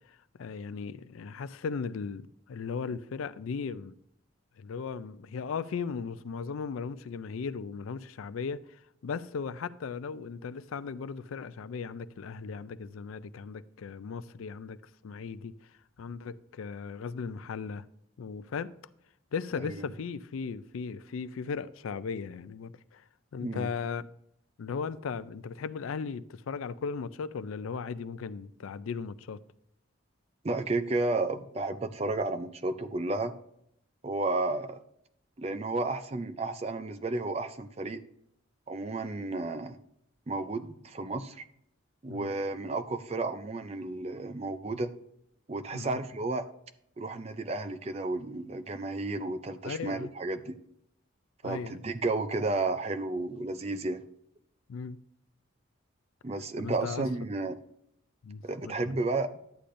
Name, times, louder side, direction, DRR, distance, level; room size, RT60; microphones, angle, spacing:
voice 1, 0.1-3.9 4.6-14.8 15.0-15.5 16.0-17.9 18.2-18.7 19.3-23.0 23.3-24.1 24.6-29.4 42.1-42.3 45.7-46.0 49.6-50.1 51.4-51.8 54.7-55.0 56.6-57.1 58.2-59.0, left 5 dB, 85° left, 0.4 m, -37 dB
voice 2, 23.4-23.7 30.4-33.3 34.0-34.8 35.4-38.0 38.7-39.8 40.3-41.4 42.0-44.9 45.5-46.5 47.0-50.6 51.4-54.0 56.2-57.6 58.4-59.3, right 2 dB, 30° right, 0.4 m, -32 dB
11.5 x 8.4 x 2.6 m
head